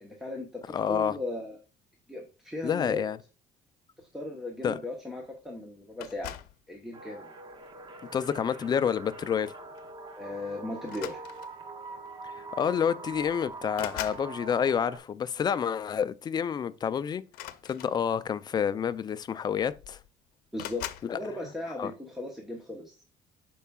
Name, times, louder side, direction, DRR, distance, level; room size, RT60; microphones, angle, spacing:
voice 1, 0.0-1.6 2.1-3.0 4.0-6.4 6.7-7.3 10.2-11.2 20.5-23.0, left 2 dB, ahead, 1.0 m, -37 dB
voice 2, 0.7-1.1 2.6-3.2 4.6-4.8 8.1-9.5 12.2-17.2 17.6-20.0 21.0-21.2 21.8-21.9, left 7 dB, 30° left, 0.4 m, -29 dB
sound 1, 6.0-6.6 7.5-7.8 9.3-9.5 9.8-10.0 10.8-11.7 12.7-12.8 13.1-14.3 17.2-18.3 19.2-19.3 19.6-20.1 20.6-21.1, left 14 dB, 90° left, 0.7 m, -41 dB
sound 2, 6.9-15.0, right 3 dB, 30° right, 0.9 m, -43 dB
12.5 x 4.7 x 2.3 m
cardioid pair, 150°, 15 cm